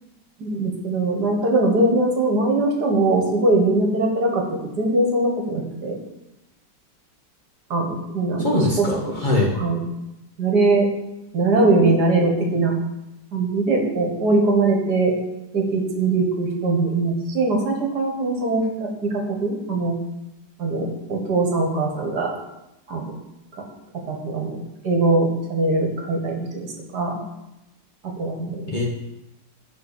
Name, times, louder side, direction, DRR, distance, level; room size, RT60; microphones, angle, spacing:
voice 1, 0.4-6.0 7.7-8.5 8.8-8.9 9.5-9.8 10.4-10.9 11.3-12.8 13.3-15.1 15.5-20.0 20.6-22.3 22.9-23.0 23.5-23.6 24.1-24.6 24.8-27.2 28.0-28.6, right 2 dB, 65° right, 1 dB, 1.9 m, -21 dB
voice 2, 8.4-9.5 28.7-28.8, left 1 dB, 30° left, -3 dB, 1.4 m, -22 dB
7.7 x 5.1 x 6.7 m, 0.93 s
omnidirectional pair, 1.9 m